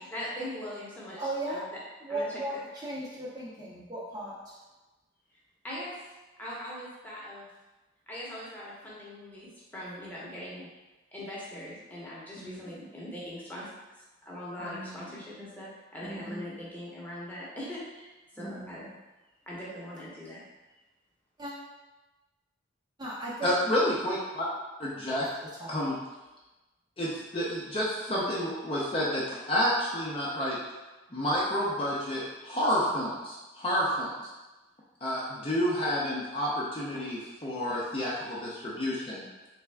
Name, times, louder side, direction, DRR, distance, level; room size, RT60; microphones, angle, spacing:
voice 1, 0.0-1.6 2.1-2.2 5.6-5.9 6.4-7.5 8.1-10.7 11.1-13.7 14.0-18.9 19.5-20.4, left 1 dB, 10° left, -7 dB, 0.9 m, -41 dB
voice 2, 1.2-1.7 2.0-4.6 12.4-12.8 14.6-15.4 16.0-16.6 18.4-18.9 21.4-21.5 23.0-23.5 25.6-25.7, right 1 dB, 20° right, -6 dB, 0.6 m, -37 dB
voice 3, 23.4-24.5 24.8-25.3 25.7-25.9 27.0-30.6 31.1-34.1 35.0-39.2, equal, 25° left, -6 dB, 0.5 m, -29 dB
3.5 x 3.4 x 3.3 m, 1.1 s
head